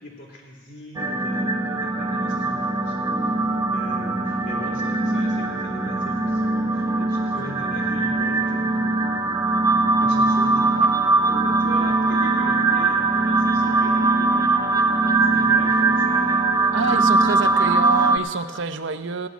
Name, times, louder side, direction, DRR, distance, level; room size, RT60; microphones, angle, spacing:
voice 1, 0.0-3.4 3.7-9.2 9.7-14.7 15.1-16.4, left 1 dB, 85° left, -3 dB, 3.4 m, -40 dB
sound 1, 0.9-18.2, right 3 dB, 20° right, 0.8 m, -21 dB
voice 2, 16.7-19.3, right 4 dB, 70° right, 10 dB, 0.6 m, -27 dB
16.0 x 6.2 x 9.3 m, 1.5 s
head